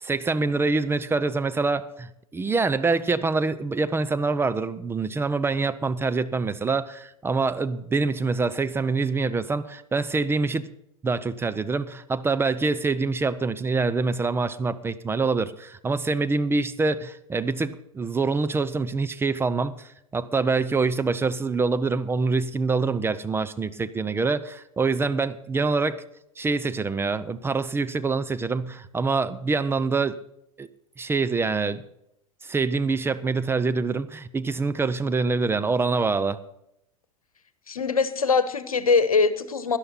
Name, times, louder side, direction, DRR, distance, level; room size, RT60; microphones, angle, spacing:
voice 1, 0.0-10.7 11.0-26.0 26.4-30.1 30.6-30.7 31.0-31.8 32.4-36.4, right 4 dB, 15° right, 12 dB, 0.6 m, -25 dB
voice 2, 37.7-39.8, left 4 dB, 80° left, 14 dB, 1.1 m, -22 dB
17.5 x 11.5 x 4.2 m, 0.80 s
figure-of-eight pair, 85°, 18 cm